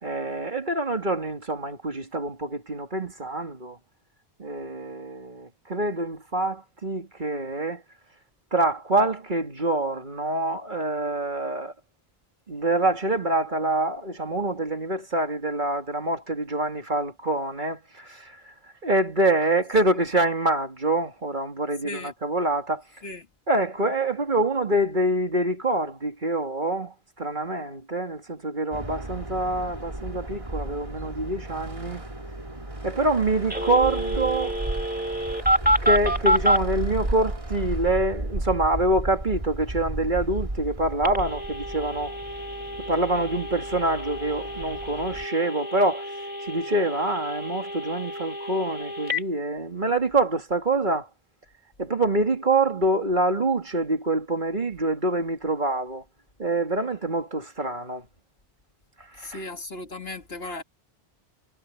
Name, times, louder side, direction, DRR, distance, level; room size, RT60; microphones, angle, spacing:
voice 1, 0.0-3.8 4.4-7.8 8.5-11.7 12.5-18.5 18.8-22.8 23.5-32.0 32.8-34.6 35.6-42.1 42.8-46.1 46.4-51.1 51.8-56.0 56.4-58.0 59.2-59.4, right 2 dB, 50° right, 2.6 m, -26 dB
sound 1, 28.7-45.3, right 1 dB, 30° right, 2.4 m, -34 dB
Telephone, 33.5-36.6 41.0-49.2, equal, 10° right, 3.1 m, -28 dB
voice 2, 59.2-60.6, left 2 dB, 75° left, 2.4 m, -36 dB
omnidirectional pair, 1.0 m